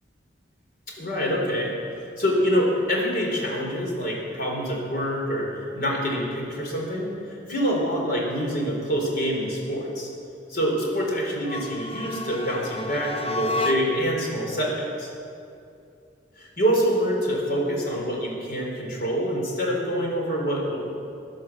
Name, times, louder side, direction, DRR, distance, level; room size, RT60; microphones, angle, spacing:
voice 1, 1.0-10.1 10.5-15.1 16.4-20.8, equal, 55° left, -1 dB, 4.1 m, -26 dB
sound 1, 11.4-14.2, left 1 dB, 30° left, 0.8 m, -30 dB
16.0 x 10.5 x 7.5 m, 2.6 s
head